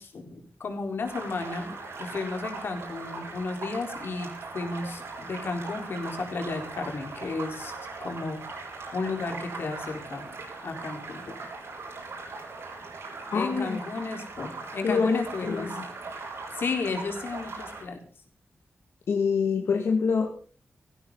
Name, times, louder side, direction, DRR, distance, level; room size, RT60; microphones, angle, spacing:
voice 1, 0.0-7.7 8.0-8.4 8.9-10.4 10.6-11.4 13.3-15.9 16.5-18.0, left 3 dB, 60° left, 4 dB, 4.0 m, -33 dB
sound 1, 1.0-17.8, right 3 dB, 85° right, 7.1 m, -40 dB
voice 2, 13.3-13.8 14.8-15.9 19.1-20.3, left 5 dB, 85° left, 2 dB, 2.1 m, -26 dB
18.5 x 15.5 x 4.0 m, 0.41 s
wide cardioid pair, 165°, 4 cm